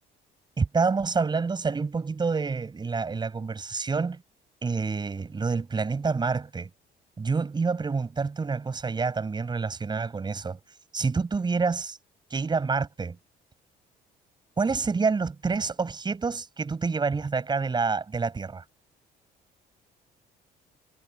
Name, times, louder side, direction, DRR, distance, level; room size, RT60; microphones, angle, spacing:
voice 1, 0.6-4.2 4.6-6.7 7.2-10.6 10.9-12.0 12.3-13.2 14.6-18.6, right 4 dB, 25° right, 6.2 m, -27 dB
cardioid pair, 110°, 17 cm